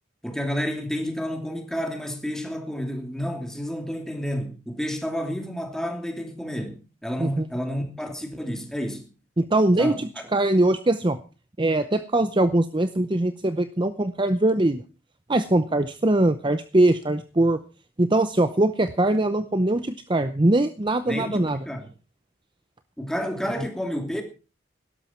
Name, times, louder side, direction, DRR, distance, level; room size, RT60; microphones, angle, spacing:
voice 1, 0.2-9.1 9.8-10.2 21.1-21.9 23.0-24.2, equal, 5° left, 2.9 m, -30 dB
voice 2, 9.4-11.2 11.6-14.8 15.3-17.6 18.0-21.6, right 1 dB, 25° right, 0.7 m, -22 dB
17.0 x 12.5 x 4.5 m
head